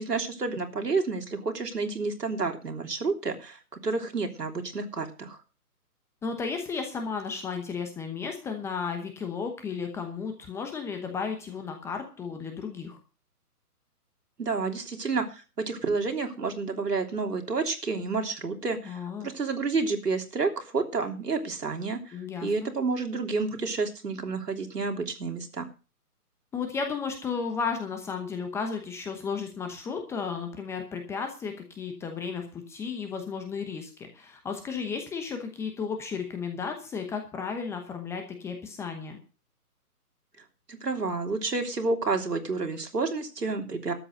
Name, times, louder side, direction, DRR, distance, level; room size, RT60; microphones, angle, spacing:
voice 1, 0.0-5.4 14.4-25.7 40.7-43.9, right 4 dB, 80° right, 4 dB, 3.4 m, -30 dB
voice 2, 6.2-13.0 18.8-19.3 22.1-22.7 26.5-39.2, left 5 dB, 5° left, 5 dB, 0.9 m, -34 dB
13.0 x 8.7 x 6.5 m, 0.34 s
figure-of-eight pair, 145°, 47 cm